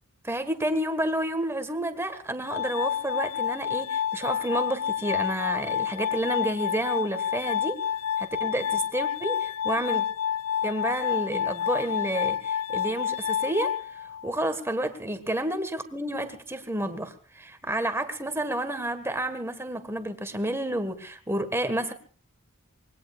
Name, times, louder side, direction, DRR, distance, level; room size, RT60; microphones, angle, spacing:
voice 1, 0.2-7.8 8.2-10.0 10.6-21.9, right 1 dB, 10° right, 9 dB, 1.6 m, -30 dB
Glass, 2.5-14.5, left 9 dB, 90° left, 0.9 m, -29 dB
25.0 x 21.0 x 2.5 m, 0.40 s
head